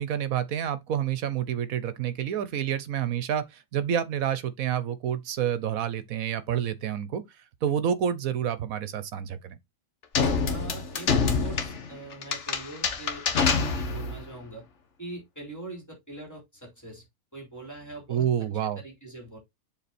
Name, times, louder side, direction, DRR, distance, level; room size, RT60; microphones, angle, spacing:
voice 1, 0.0-3.4 3.7-7.2 7.6-9.6 18.1-18.8, right 9 dB, 70° right, 1.2 m, -28 dB
sound 1, 10.1-14.2, left 5 dB, 55° left, 1.4 m, -26 dB
voice 2, 10.5-14.6 15.0-17.0 17.3-19.4, right 2 dB, 10° left, 3.4 m, -43 dB
7.3 x 4.0 x 4.2 m
omnidirectional pair, 1.6 m